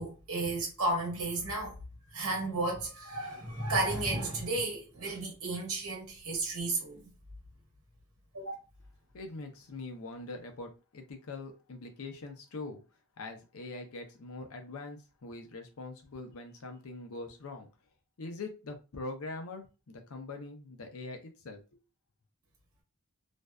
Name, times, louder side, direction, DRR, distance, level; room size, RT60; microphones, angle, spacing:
voice 1, 0.0-1.7 2.1-7.0 8.3-8.4, right 2 dB, 65° right, 1.0 m, -33 dB
voice 2, 9.1-12.8 13.2-17.7 18.2-21.8, left 3 dB, 70° left, 0.5 m, -43 dB
2.5 x 2.2 x 2.2 m
head